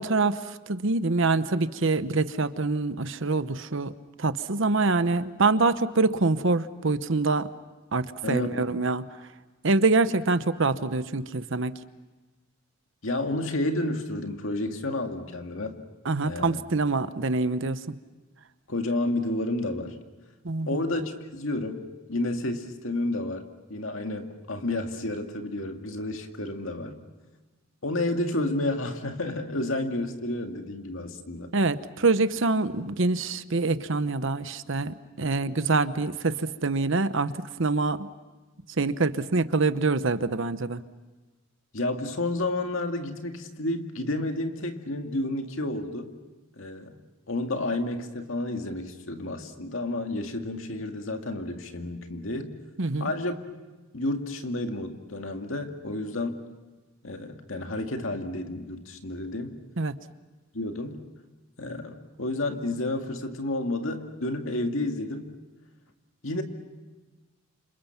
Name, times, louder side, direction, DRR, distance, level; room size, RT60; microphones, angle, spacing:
voice 1, 0.0-3.9 4.2-7.5 7.9-9.0 9.6-11.7 16.0-17.9 20.4-20.8 31.5-37.3 37.6-38.1 38.8-40.8 52.8-53.1 59.8-59.9, right 3 dB, 65° right, 12 dB, 1.0 m, -25 dB
voice 2, 8.2-8.7 13.0-15.8 16.2-16.6 18.7-20.0 20.7-27.0 27.8-31.5 41.7-46.1 46.6-47.0 47.3-52.5 53.0-53.3 53.9-56.4 57.0-59.6 60.5-61.0 61.6-65.3 66.2-66.4, left 2 dB, 70° left, 4 dB, 2.2 m, -31 dB
30.0 x 27.5 x 6.0 m, 1.2 s
head